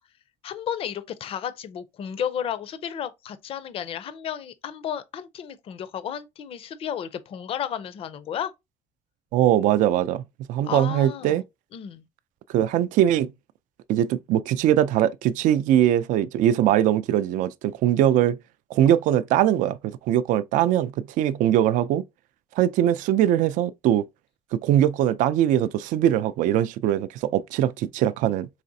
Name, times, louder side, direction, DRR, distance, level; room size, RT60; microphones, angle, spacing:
voice 1, 0.4-8.5 10.6-11.4 11.7-12.0 18.9-19.0, left 9 dB, 45° left, 0.5 m, -33 dB
voice 2, 9.3-10.2 10.5-11.4 12.5-13.3 13.9-18.4 18.7-22.0 22.6-24.1 24.5-28.5, right 11 dB, 70° right, 0.4 m, -21 dB
4.8 x 3.2 x 2.6 m
cardioid pair, 150°, 14 cm